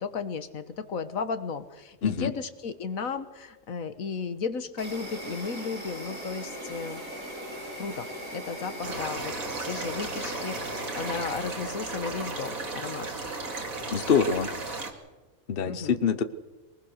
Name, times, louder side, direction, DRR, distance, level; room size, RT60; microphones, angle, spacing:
voice 1, 0.0-7.0 7.8-8.1 8.3-9.3 9.7-13.1 15.6-16.0, left 5 dB, 80° left, 11 dB, 1.7 m, -34 dB
Insect, 4.8-11.4, equal, 65° right, 6.6 m, -39 dB
sound 1, 8.8-14.9, right 3 dB, 90° right, 2.7 m, -35 dB
voice 2, 13.9-14.5 15.5-16.2, left 6 dB, 45° left, 11 dB, 1.1 m, -25 dB
23.0 x 19.5 x 6.5 m, 1.2 s
omnidirectional pair, 1.4 m